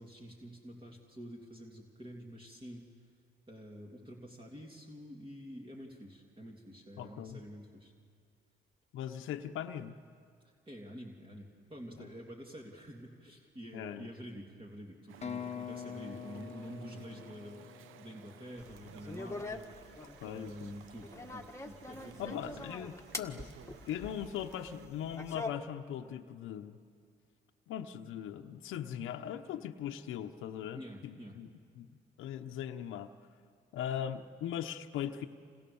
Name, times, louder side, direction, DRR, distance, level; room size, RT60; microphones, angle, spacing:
voice 1, 0.0-2.9 3.5-7.9 10.4-22.8 30.7-31.4, equal, 25° right, -1 dB, 3.1 m, -48 dB
voice 2, 7.0-7.4 8.9-9.9 12.0-12.1 13.7-14.1 20.0-20.7 22.2-23.4 23.9-26.8 27.7-31.5 31.8-31.9 32.2-33.1 33.7-35.3, left 10 dB, 85° left, 5 dB, 1.0 m, -40 dB
Chatter / Stream, 15.1-24.9, right 10 dB, 90° right, 0.9 m, -56 dB
sound 1, 15.2-19.0, left 8 dB, 35° left, 1.0 m, -45 dB
sound 2, 18.6-25.5, left 3 dB, 15° left, 1.7 m, -44 dB
28.5 x 27.5 x 7.1 m, 2.2 s
cardioid pair, 90°, 20 cm